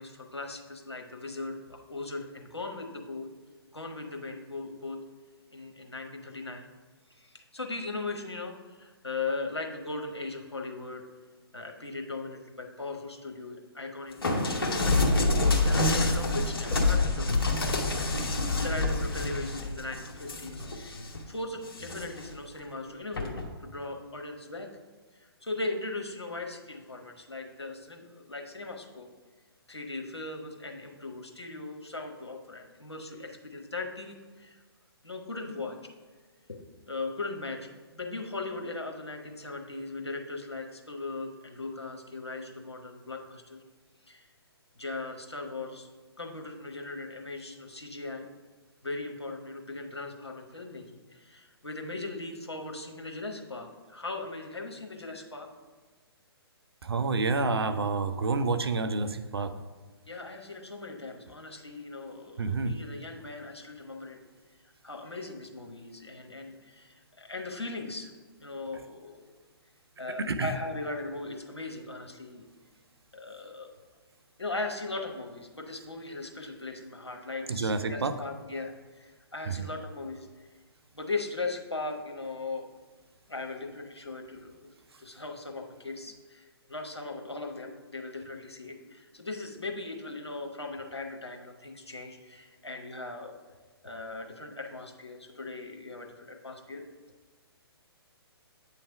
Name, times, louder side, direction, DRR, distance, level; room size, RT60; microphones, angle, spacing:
voice 1, 0.0-3.3 3.7-5.0 5.5-6.7 7.1-11.0 11.5-14.9 15.4-17.3 18.6-23.3 23.6-24.7 25.1-29.1 29.7-34.6 35.0-35.8 36.5-43.6 44.1-44.3 44.8-45.9 46.2-48.3 48.8-50.8 51.1-55.5 60.0-64.2 64.8-68.1 68.4-69.3 70.0-72.5 73.1-73.7 74.4-80.3 80.9-82.7 83.3-84.6 85.0-93.3 93.8-96.8, left 3 dB, 85° left, 2 dB, 1.0 m, -38 dB
sound 1, 14.2-21.2 21.7-22.3 23.2-23.5, left 2 dB, 60° left, 1.1 m, -27 dB
voice 2, 56.8-59.5 62.4-62.8 70.2-70.5 77.5-78.2 79.5-79.7, right 3 dB, 70° right, 9 dB, 0.5 m, -29 dB
8.5 x 3.2 x 4.9 m, 1.4 s
figure-of-eight pair, 130°, 14 cm